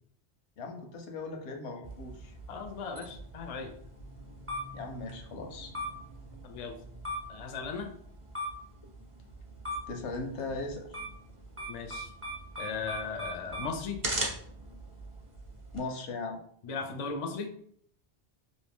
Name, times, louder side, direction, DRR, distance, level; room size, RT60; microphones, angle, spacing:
voice 1, 0.6-2.3 4.7-5.7 9.9-11.0 15.7-16.4, left 3 dB, 85° left, 4 dB, 0.9 m, -38 dB
sound 1, 1.8-15.8, right 1 dB, 35° right, 0.7 m, -40 dB
voice 2, 2.5-3.7 6.4-6.7 7.3-7.9 11.7-12.1 12.6-14.0 16.6-17.5, left 5 dB, 55° left, 5 dB, 0.4 m, -37 dB
2.7 x 2.6 x 3.5 m, 0.64 s
omnidirectional pair, 1.1 m